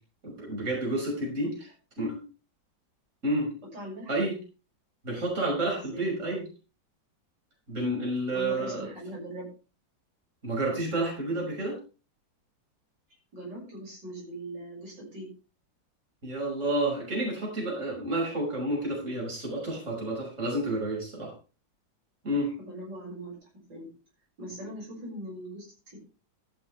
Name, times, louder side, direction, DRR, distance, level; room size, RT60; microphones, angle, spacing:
voice 1, 0.2-1.5 2.0-2.2 3.2-3.5 4.1-4.3 5.0-6.4 7.7-8.9 10.4-11.7 16.2-21.3 22.2-22.5, right 1 dB, 40° right, -2 dB, 6.6 m, -30 dB
voice 2, 3.7-4.1 5.8-6.1 8.3-9.5 13.3-15.3 22.6-23.3 23.7-23.9 24.4-26.0, right 1 dB, 65° right, -3 dB, 7.3 m, -40 dB
14.0 x 13.5 x 3.4 m, 0.34 s
omnidirectional pair, 2.1 m